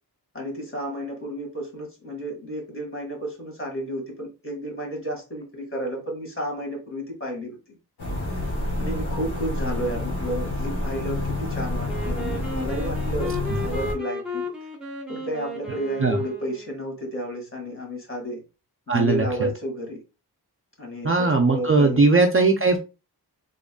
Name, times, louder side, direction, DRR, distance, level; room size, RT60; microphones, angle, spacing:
voice 1, 0.3-7.6 8.3-8.4 8.8-14.4 15.1-18.4 18.9-20.0 20.8-22.1, equal, 30° left, 0 dB, 1.8 m, -32 dB
sound 1, 8.0-13.9, left 1 dB, 75° left, 1.8 m, -28 dB
Wind instrument woodwind instrument, 11.9-16.9, left 1 dB, ahead, 1.0 m, -34 dB
voice 2, 18.9-19.5 21.0-22.8, right 3 dB, 35° right, 4 dB, 0.5 m, -19 dB
3.8 x 3.6 x 2.2 m, 0.30 s
wide cardioid pair, 105°, 40 cm